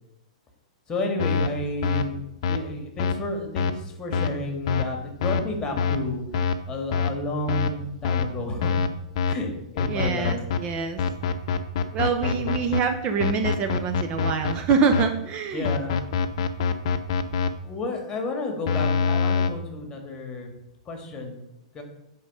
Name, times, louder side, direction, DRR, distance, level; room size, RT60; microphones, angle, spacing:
voice 1, 0.9-2.2 2.5-6.2 6.7-8.8 9.3-10.4 12.2-12.6 15.5-16.0 17.6-20.5 20.9-21.4 21.7-21.8, left 2 dB, 20° left, 4 dB, 1.8 m, -31 dB
sound 1, 1.2-1.5 1.8-2.0 2.4-2.6 3.0-3.1 3.6-3.7 4.1-4.3 4.7-4.8 5.2-5.4 5.8-6.0 6.3-6.5 6.9-7.1 7.5-7.7 8.0-8.3 8.6-8.9 9.2-9.3 9.8-10.6 11.0-12.8 13.2-15.0 15.6-17.5 18.7-19.5, left 6 dB, 55° left, 0.7 m, -24 dB
voice 2, 9.9-11.0 11.9-15.7, right 5 dB, 35° right, 6 dB, 0.7 m, -25 dB
9.4 x 3.8 x 5.5 m, 0.86 s
hypercardioid pair, 110°, 4 cm